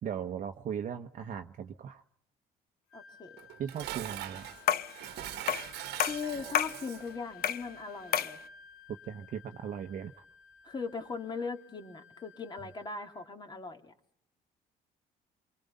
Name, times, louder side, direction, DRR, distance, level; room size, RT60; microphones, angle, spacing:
voice 1, 0.0-2.0 3.6-4.5 9.1-10.1, right 8 dB, 50° right, 5 dB, 1.1 m, -38 dB
Wind instrument woodwind instrument, 2.9-13.3, left 6 dB, 80° left, 4.0 m, -55 dB
voice 2, 2.9-3.3 6.1-8.4 10.6-13.9, left 5 dB, 25° left, 5 dB, 3.0 m, -39 dB
Dishes pots and pans, 3.4-7.2, right 13 dB, 80° right, 1.4 m, -42 dB
sound 1, 4.7-5.0 5.5-5.7 6.0-6.8 7.4-7.7 8.1-8.4, left 10 dB, 65° left, 0.9 m, -29 dB
27.5 x 23.0 x 5.4 m, 0.67 s
cardioid pair, 110°, 17 cm